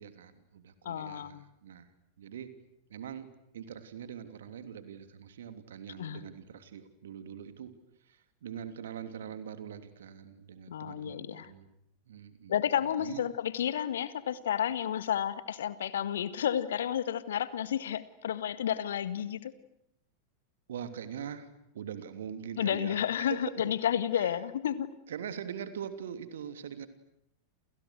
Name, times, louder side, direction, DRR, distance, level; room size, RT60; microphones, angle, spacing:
voice 1, 0.0-1.9 2.2-2.5 2.9-3.3 3.5-7.8 8.1-11.7 12.1-13.2 20.7-21.5 21.7-23.8 24.1-24.4 25.1-26.9, right 8 dB, 60° right, 10 dB, 3.1 m, -43 dB
voice 2, 0.9-1.4 6.0-6.3 10.7-11.5 12.5-19.5 22.6-24.9, left 9 dB, 60° left, 14 dB, 1.7 m, -31 dB
30.0 x 29.0 x 6.5 m, 0.77 s
figure-of-eight pair, 90°, 0 cm